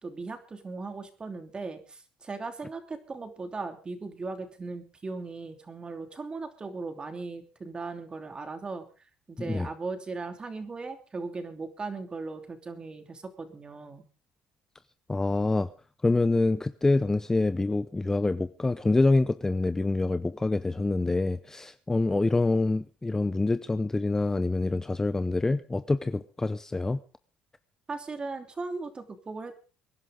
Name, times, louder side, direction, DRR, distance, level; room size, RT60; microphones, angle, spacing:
voice 1, 0.0-14.1 27.9-29.5, right 3 dB, 25° right, 2.9 m, -38 dB
voice 2, 15.1-15.7 16.0-27.0, left 2 dB, 15° left, 0.7 m, -26 dB
25.0 x 11.0 x 3.8 m
supercardioid pair, 90°, 3 cm